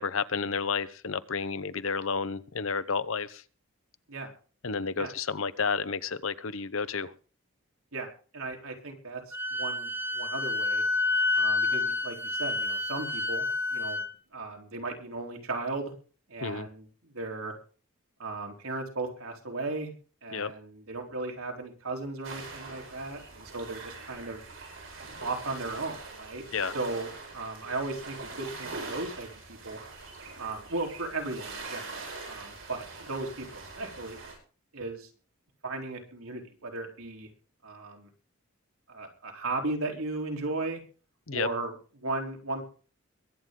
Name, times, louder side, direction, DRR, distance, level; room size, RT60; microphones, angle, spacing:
voice 1, 0.0-3.4 4.6-7.1 16.4-16.7 20.3-20.5 26.5-26.7 41.3-41.5, left 5 dB, 70° left, 0.9 m, -31 dB
voice 2, 8.3-10.8 11.4-14.0 14.3-15.9 16.3-17.5 18.2-19.9 20.2-24.4 25.2-26.4 26.7-29.8 30.4-34.2 34.7-35.1 35.6-37.3 37.6-38.1 38.9-40.8 41.3-42.6, right 2 dB, 85° right, 3.8 m, -36 dB
Wind instrument woodwind instrument, 9.3-14.1, left 2 dB, 10° right, 1.0 m, -29 dB
sound 1, 22.2-34.3, right 3 dB, 65° right, 7.9 m, -43 dB
22.5 x 9.3 x 3.8 m
head